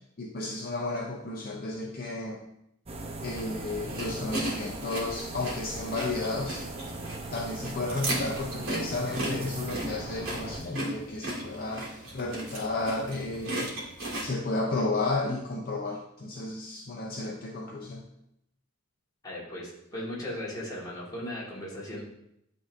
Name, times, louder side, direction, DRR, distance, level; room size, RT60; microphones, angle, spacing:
voice 1, 0.2-2.4 3.2-6.7 7.3-13.7 14.2-18.1, left 2 dB, 45° left, 0 dB, 0.6 m, -33 dB
sound 1, 2.8-10.6, right 2 dB, 30° right, 0.7 m, -39 dB
sound 2, 3.3-14.3, right 1 dB, 75° right, 1.9 m, -36 dB
voice 2, 19.2-22.0, left 1 dB, 20° left, -6 dB, 1.7 m, -37 dB
10.5 x 3.6 x 2.6 m, 0.77 s
head